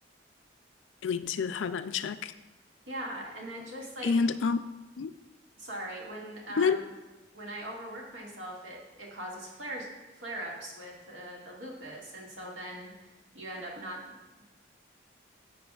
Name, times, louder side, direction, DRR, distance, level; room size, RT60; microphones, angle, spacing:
voice 1, 1.0-2.3 4.0-4.6 5.0-5.1 6.5-6.8, left 5 dB, 80° left, 12 dB, 0.4 m, -28 dB
voice 2, 2.9-4.1 5.6-6.9 7.3-9.9 10.1-14.2, right 1 dB, 80° right, -3 dB, 1.9 m, -41 dB
14.0 x 5.1 x 2.4 m, 1.1 s
head